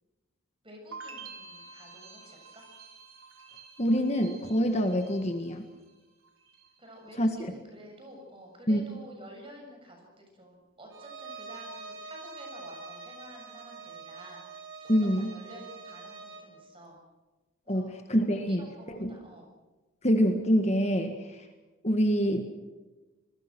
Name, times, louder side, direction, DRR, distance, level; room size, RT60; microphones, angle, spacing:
voice 1, 0.6-2.6 6.8-14.4 14.8-17.0 17.7-17.9 18.3-19.5, equal, 25° right, 2 dB, 7.1 m, -50 dB
sound 1, 0.9-5.9 6.2-6.9, right 4 dB, 80° right, 4.9 m, -49 dB
voice 2, 3.8-5.6 7.2-7.5 8.7-8.8 14.9-15.3 17.7-19.1 20.0-21.5 21.8-22.4, equal, 30° left, 5 dB, 1.7 m, -26 dB
Bowed string instrument, 10.9-16.5, right 4 dB, 65° right, 5.6 m, -45 dB
27.0 x 22.0 x 6.2 m, 1.2 s
head